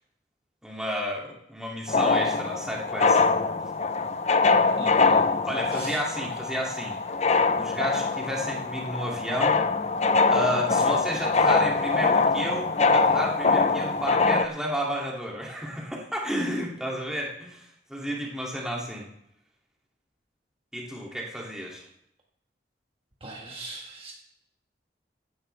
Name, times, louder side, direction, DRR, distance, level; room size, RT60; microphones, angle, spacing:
voice 1, 0.6-3.2 5.4-7.0 7.6-9.6 10.2-17.6 17.9-19.1 20.7-21.9, equal, 5° right, -3 dB, 2.6 m, -31 dB
sound 1, 1.9-14.5, left 4 dB, 40° left, 0.7 m, -23 dB
voice 2, 4.8-5.2 5.7-6.3 10.5-10.8 23.2-24.1, right 2 dB, 30° right, -1 dB, 1.5 m, -40 dB
15.5 x 11.0 x 3.4 m, 0.78 s
head